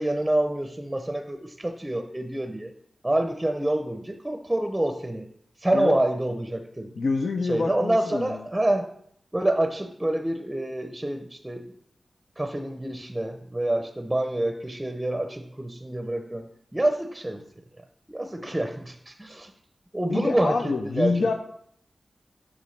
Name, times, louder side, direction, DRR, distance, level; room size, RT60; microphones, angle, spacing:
voice 1, 0.0-2.7 3.0-5.3 5.6-6.9 7.4-8.9 9.3-11.7 12.4-17.4 18.1-19.5 19.9-21.3, right 1 dB, 15° right, 6 dB, 0.5 m, -27 dB
voice 2, 7.0-8.4 18.4-18.5 20.1-21.3, left 3 dB, 80° left, 4 dB, 0.4 m, -26 dB
6.8 x 6.0 x 3.2 m, 0.67 s
wide cardioid pair, 75°, 0 cm